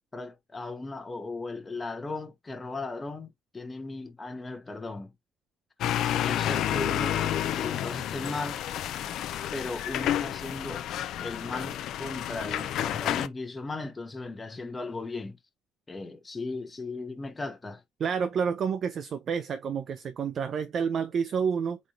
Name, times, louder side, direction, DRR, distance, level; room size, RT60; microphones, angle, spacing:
voice 1, 0.1-5.1 6.1-8.6 9.5-10.9 11.2-15.4 15.9-17.8, left 3 dB, 25° left, 0.9 m, -37 dB
sound 1, 5.8-13.3, left 11 dB, 55° left, 0.4 m, -30 dB
voice 2, 18.0-21.8, right 6 dB, 45° right, 0.4 m, -29 dB
4.1 x 3.5 x 2.7 m
figure-of-eight pair, 45°, 0 cm